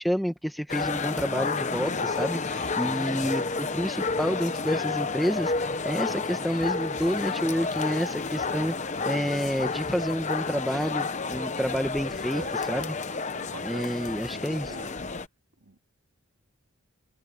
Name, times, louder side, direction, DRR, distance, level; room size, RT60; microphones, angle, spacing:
voice 1, 0.0-8.7 9.0-12.9 13.6-14.7, equal, ahead, 1.4 m, -29 dB
sound 1, 0.7-15.3, left 4 dB, 30° left, 0.9 m, -30 dB
voice 2, 12.3-13.0 13.3-14.9 15.6-15.8, right 3 dB, 70° right, 2.5 m, -45 dB
head